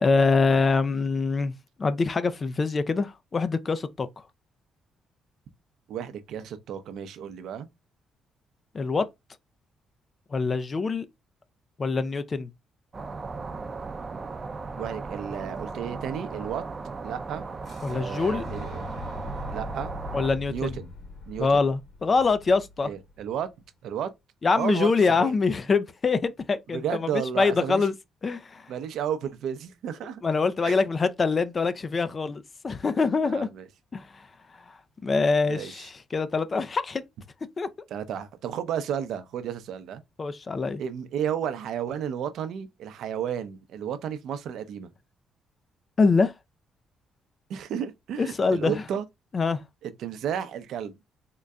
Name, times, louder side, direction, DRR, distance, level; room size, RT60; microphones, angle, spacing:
voice 1, 0.0-1.5 1.8-4.1 8.7-9.1 10.3-11.1 11.8-12.5 17.8-18.4 20.1-20.7 21.4-22.9 24.4-27.9 28.2-28.7 30.2-33.5 33.9-34.2 35.0-37.1 37.6-37.7 40.2-40.8 46.0-46.3 48.2-48.8 49.3-49.6, left 4 dB, 35° left, 0.4 m, -24 dB
voice 2, 5.9-7.7 14.8-16.6 17.0-17.4 17.9-18.8 19.5-19.9 20.5-20.9 21.3-21.6 22.8-23.5 23.8-24.1 24.6-25.3 26.7-27.9 28.7-30.2 30.6-30.7 33.3-33.7 35.5-35.8 37.9-40.0 40.8-44.9 47.5-49.0 49.8-50.9, right 8 dB, 75° right, 0.5 m, -32 dB
sound 1, 12.9-20.3, right 4 dB, 30° right, 0.5 m, -36 dB
Boom, 17.6-23.5, left 2 dB, 50° left, 2.2 m, -41 dB
3.7 x 2.2 x 3.5 m
cardioid pair, 90°, 0 cm